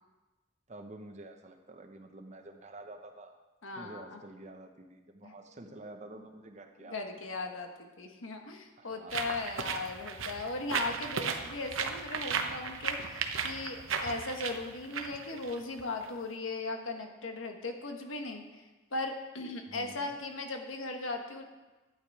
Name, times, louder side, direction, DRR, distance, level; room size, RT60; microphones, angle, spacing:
voice 1, 0.7-3.3 3.8-7.1 8.8-9.3 19.7-20.1, right 2 dB, 35° right, 5 dB, 0.8 m, -49 dB
voice 2, 3.6-4.2 5.2-5.3 6.8-18.6 18.9-21.4, left 2 dB, 85° left, 4 dB, 1.3 m, -38 dB
sound 1, 9.1-16.1, right 6 dB, 85° right, 0.9 m, -36 dB
12.0 x 8.7 x 4.7 m, 1.2 s
head